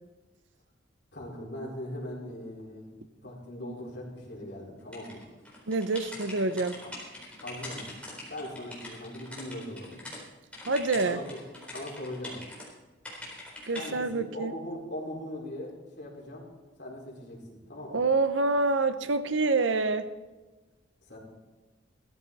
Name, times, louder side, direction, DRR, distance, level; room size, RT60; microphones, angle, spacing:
voice 1, 1.1-5.2 7.4-8.0 8.3-10.0 11.1-11.2 11.7-12.4 13.7-16.5 16.8-18.0 21.0-21.2, left 1 dB, 60° left, -3 dB, 4.7 m, -40 dB
sound 1, 4.9-10.2 10.5-12.7 13.0-13.9, left 2 dB, 5° left, 4.1 m, -43 dB
voice 2, 5.7-6.8 10.7-11.2 13.7-14.5 17.9-20.1, right 3 dB, 75° right, 11 dB, 0.9 m, -26 dB
15.5 x 14.0 x 4.2 m, 1.2 s
head